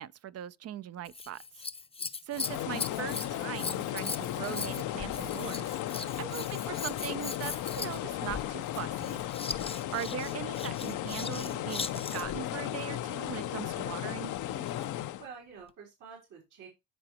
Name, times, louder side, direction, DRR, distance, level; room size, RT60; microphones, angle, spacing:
voice 1, 0.0-1.6 2.3-5.8 6.2-9.2 9.9-14.3, right 11 dB, 55° right, 0.5 m, -40 dB
Scissors, 1.0-12.4 14.4-15.0 15.7-15.8, left 4 dB, 20° left, 0.6 m, -40 dB
sound 1, 2.3-15.3, left 13 dB, 80° left, 0.6 m, -35 dB
voice 2, 14.9-16.7, right 6 dB, 80° right, 3.6 m, -50 dB
13.5 x 4.9 x 2.9 m
cardioid pair, 90°, 30 cm